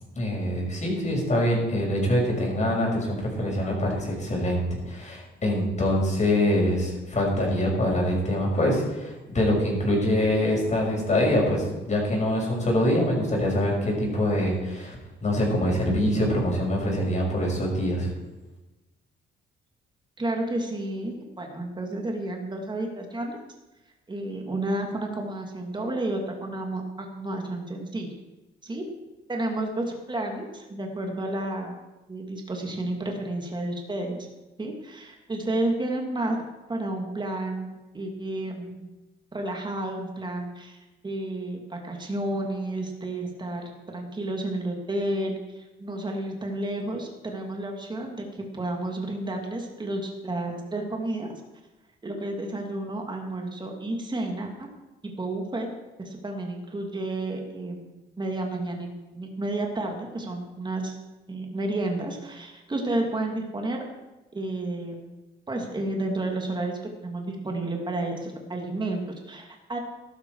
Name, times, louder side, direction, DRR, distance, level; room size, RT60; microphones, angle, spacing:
voice 1, 0.2-15.0 15.2-18.1, left 1 dB, 35° left, -2 dB, 6.4 m, -24 dB
voice 2, 20.2-23.4 24.1-28.1 28.6-28.8 29.3-31.8 32.1-34.3 34.6-36.4 36.7-39.0 39.3-51.4 52.0-54.7 55.0-55.7 56.0-57.9 58.2-61.0 61.3-63.8 64.3-65.1 65.5-69.8, right 2 dB, 20° right, 2 dB, 2.6 m, -31 dB
14.5 x 12.5 x 4.8 m, 1.1 s
cardioid pair, 90°, 20 cm